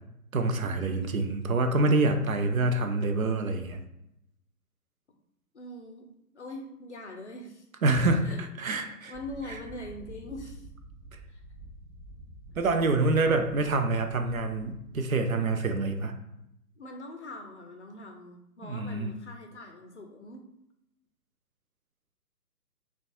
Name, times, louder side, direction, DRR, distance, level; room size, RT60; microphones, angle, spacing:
voice 1, 0.3-3.8 7.8-9.1 12.6-16.1 18.6-19.1, right 2 dB, 60° right, 6 dB, 0.5 m, -26 dB
voice 2, 5.5-6.1 6.3-7.7 8.2-8.5 8.8-10.7 11.3-11.4 16.8-20.5, left 1 dB, 50° left, 2 dB, 0.5 m, -43 dB
sound 1, 9.1-15.1, right 2 dB, 30° right, 0.7 m, -48 dB
3.8 x 2.3 x 2.6 m, 0.82 s
figure-of-eight pair, 135°, 48 cm